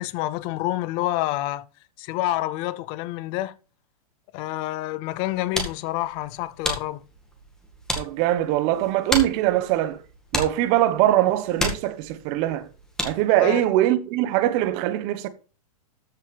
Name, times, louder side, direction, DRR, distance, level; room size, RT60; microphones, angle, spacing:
voice 1, 0.0-1.7 2.0-3.6 4.3-7.0 13.4-13.6, left 16 dB, 25° left, 0.5 m, -28 dB
sound 1, 5.1-13.4, left 1 dB, 5° left, 2.0 m, -33 dB
voice 2, 8.0-10.0 10.3-12.7 13.0-15.3, right 14 dB, 30° right, 1.1 m, -22 dB
14.0 x 5.6 x 3.4 m
hypercardioid pair, 155°, 19 cm